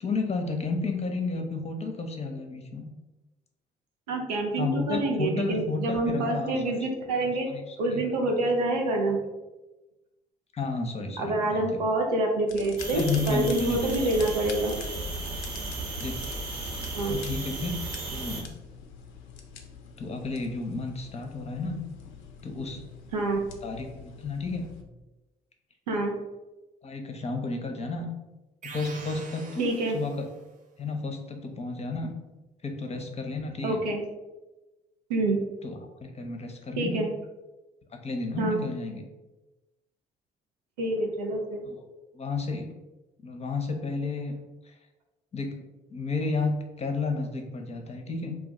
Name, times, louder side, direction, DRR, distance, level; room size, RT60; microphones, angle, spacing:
voice 1, 0.0-2.9 4.6-6.8 7.2-8.0 10.5-11.8 12.9-14.0 16.0-16.3 17.1-17.7 18.1-18.6 20.0-21.8 22.4-22.8 23.6-24.7 26.8-28.1 28.6-30.2 30.8-32.1 32.6-33.8 35.6-37.1 37.9-39.0 41.6-41.8 42.1-42.7 43.2-44.7 45.3-45.5 45.9-48.4, left 3 dB, 30° left, 4 dB, 0.7 m, -32 dB
voice 2, 4.1-7.5 7.8-9.2 11.2-14.8 16.9-17.1 23.1-23.4 25.9-26.1 29.6-30.0 33.6-34.0 35.1-35.4 36.8-37.1 38.4-38.6 40.8-41.6, right 2 dB, 90° right, 1 dB, 0.5 m, -27 dB
sound 1, 12.5-24.8, left 7 dB, 70° left, 0.4 m, -46 dB
sound 2, 12.8-18.4, right 2 dB, 60° right, 1.0 m, -35 dB
sound 3, 28.6-30.5, right 4 dB, 40° right, 0.5 m, -44 dB
2.4 x 2.2 x 3.8 m, 1.1 s
hypercardioid pair, 50°, 20 cm